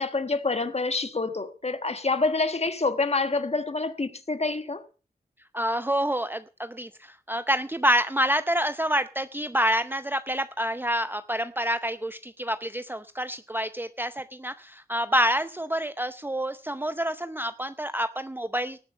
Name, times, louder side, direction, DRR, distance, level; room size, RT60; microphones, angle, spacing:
voice 1, 0.0-4.9, left 3 dB, 40° left, 1.4 m, -27 dB
voice 2, 5.5-18.8, equal, 15° right, 0.7 m, -27 dB
19.0 x 7.2 x 5.4 m
wide cardioid pair, 70°, 16 cm